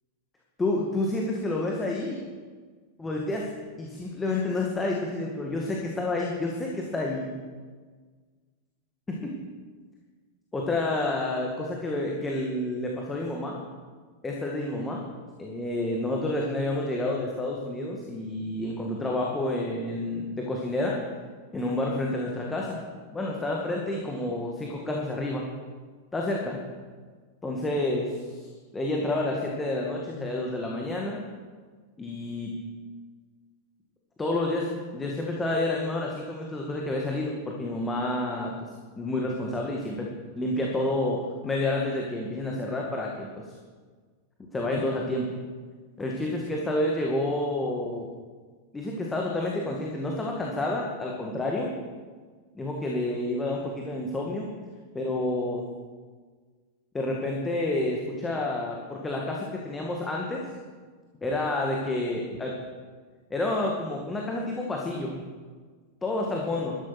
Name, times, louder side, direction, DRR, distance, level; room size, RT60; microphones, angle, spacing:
voice 1, 0.6-2.2 3.0-3.5 3.8-7.3 9.1-9.3 10.5-13.6 14.2-15.0 15.4-21.0 21.5-22.8 23.1-25.5 26.1-26.6 27.4-28.5 28.7-31.2 32.0-32.5 34.2-38.7 39.0-40.1 40.3-43.5 44.5-45.3 46.0-48.1 48.7-51.7 52.5-54.5 54.9-55.7 56.9-60.4 61.2-62.6 63.3-65.2 66.0-66.8, left 2 dB, 15° left, -1 dB, 2.0 m, -29 dB
13.0 x 11.5 x 6.1 m, 1.5 s
figure-of-eight pair, 90°, 0 cm